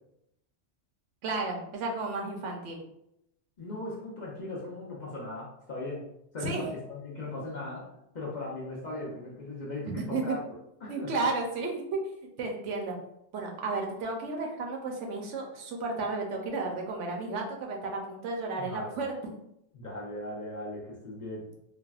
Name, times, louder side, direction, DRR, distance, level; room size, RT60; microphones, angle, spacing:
voice 1, 1.2-2.8 6.4-6.6 10.0-10.3 10.9-12.9 13.3-19.1, right 3 dB, 80° right, 1 dB, 0.9 m, -33 dB
voice 2, 3.6-6.0 6.3-7.9 8.1-10.4 10.8-11.1 18.6-19.0 19.7-21.5, left 2 dB, 50° left, -4 dB, 0.6 m, -38 dB
3.3 x 2.0 x 2.3 m, 0.80 s
omnidirectional pair, 1.2 m